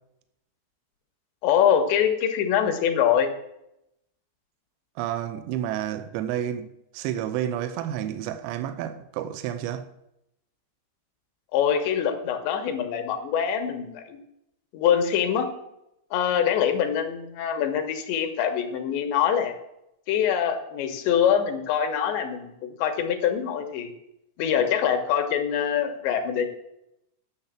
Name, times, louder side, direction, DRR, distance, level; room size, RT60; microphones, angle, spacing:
voice 1, 1.4-3.3 11.5-14.2 14.7-15.5 16.1-19.5 20.1-23.9 24.4-26.5, left 8 dB, 80° left, 3.4 m, -24 dB
voice 2, 5.0-9.9, right 11 dB, 85° right, 3.0 m, -30 dB
10.5 x 7.1 x 7.4 m
omnidirectional pair, 5.1 m